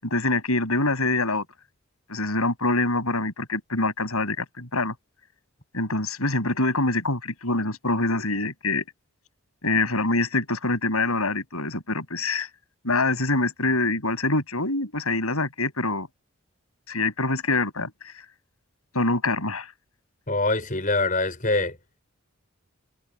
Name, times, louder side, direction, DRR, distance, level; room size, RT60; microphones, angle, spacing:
voice 1, 0.0-1.4 2.1-4.9 5.7-8.8 9.6-12.5 12.8-16.1 16.9-17.9 18.9-19.7, left 2 dB, 90° left, 7.6 m, -25 dB
voice 2, 20.3-21.8, left 2 dB, 35° left, 6.7 m, -24 dB
head